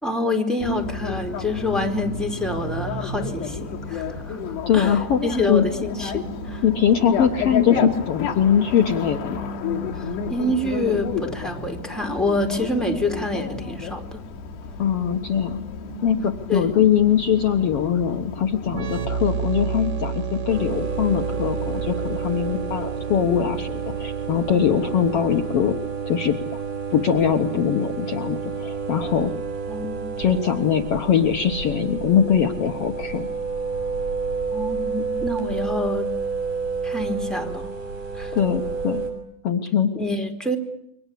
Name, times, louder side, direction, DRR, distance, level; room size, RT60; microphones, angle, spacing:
voice 1, 0.0-4.4 4.7-5.0 5.2-6.6 9.9-14.2 16.5-16.9 29.7-30.2 34.5-36.1 36.8-37.7 38.1-38.4 39.1-39.2 39.9-40.6, left 1 dB, ahead, 3 dB, 3.8 m, -27 dB
Bicycle, 0.6-18.8, left 5 dB, 85° left, 5.1 m, -31 dB
voice 2, 4.7-5.2 5.5-5.6 6.6-9.5 14.8-15.6 16.0-25.7 26.1-26.4 26.9-29.3 30.2-33.3 38.3-39.0 39.4-39.9, left 8 dB, 65° left, 5 dB, 1.4 m, -21 dB
sound 1, 18.7-26.2, right 5 dB, 85° right, 0.9 m, -31 dB
sound 2, 20.5-39.1, right 5 dB, 60° right, 9.0 m, -30 dB
29.0 x 24.5 x 8.5 m, 0.74 s
omnidirectional pair, 4.7 m